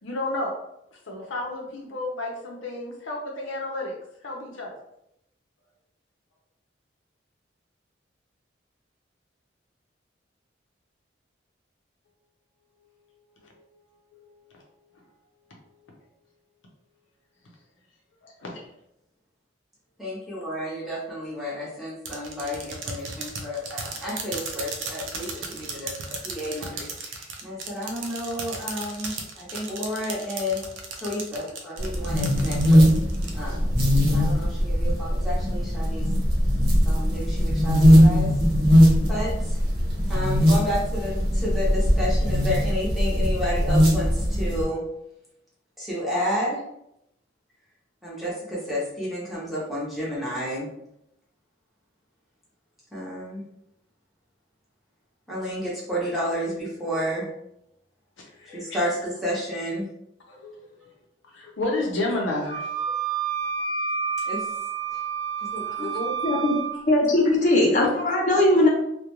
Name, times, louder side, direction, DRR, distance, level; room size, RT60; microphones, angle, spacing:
voice 1, 0.0-0.5 1.1-3.9 4.2-4.7 13.4-13.5 14.1-14.3 14.5-14.6 15.8-15.9 18.2-18.6 58.2-58.9 60.3-60.9 61.3-62.9, left 2 dB, 85° left, 0 dB, 0.6 m, -31 dB
voice 2, 20.0-26.0 26.2-30.6 30.9-32.9 33.3-33.8 34.1-36.1 36.8-38.3 39.1-39.6 40.1-44.8 45.8-46.6 48.0-50.7 52.9-53.4 55.3-57.3 58.5-59.9 64.2-64.5 64.9-65.0 65.5-66.2 66.7-66.8 67.4-67.7, equal, ahead, -7 dB, 0.7 m, -31 dB
sound 1, 22.1-33.3, right 4 dB, 90° right, 0.5 m, -35 dB
sound 2, 31.8-44.6, equal, 55° right, 0.8 m, -20 dB
Wind instrument woodwind instrument, 62.5-66.7, right 6 dB, 20° right, 0.3 m, -29 dB
voice 3, 66.2-66.5 66.9-68.7, left 1 dB, 40° left, -2 dB, 0.7 m, -19 dB
2.4 x 2.2 x 2.9 m, 0.80 s
head